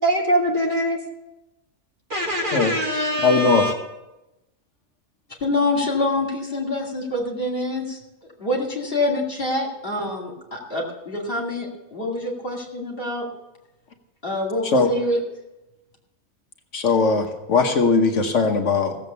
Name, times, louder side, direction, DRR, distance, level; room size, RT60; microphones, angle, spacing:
voice 1, 0.0-1.0 2.1-3.7, equal, 40° right, 0 dB, 2.0 m, -23 dB
voice 2, 3.2-3.6 14.7-14.9 16.7-19.0, left 4 dB, 70° left, 5 dB, 1.4 m, -19 dB
voice 3, 5.4-13.3 14.2-15.2, left 2 dB, 45° left, -1 dB, 2.6 m, -26 dB
16.5 x 7.6 x 6.9 m, 0.97 s
omnidirectional pair, 1.3 m